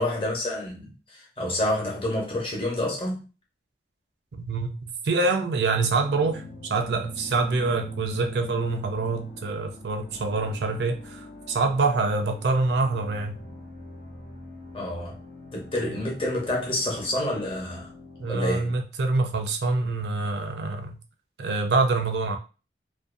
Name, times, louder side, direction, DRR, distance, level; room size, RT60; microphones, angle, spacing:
voice 1, 0.0-3.2 14.7-15.2 15.5-17.9 18.3-18.7, left 1 dB, 30° left, 0.8 m, -28 dB
voice 2, 4.3-13.4 15.8-16.0 18.2-21.0 21.4-22.4, right 3 dB, 70° right, 0.4 m, -26 dB
sound 1, 5.7-18.8, left 2 dB, 65° left, 0.9 m, -44 dB
2.5 x 2.1 x 2.5 m
head